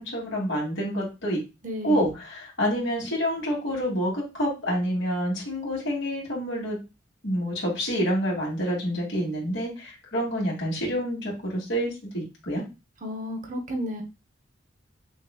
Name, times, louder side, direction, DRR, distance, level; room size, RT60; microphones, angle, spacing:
voice 1, 0.0-1.4 1.8-6.8 7.2-12.6, equal, 75° left, -3 dB, 2.4 m, -28 dB
voice 2, 1.6-2.1 13.0-14.0, left 1 dB, 40° right, 3 dB, 0.8 m, -32 dB
6.2 x 3.0 x 2.2 m, 0.27 s
head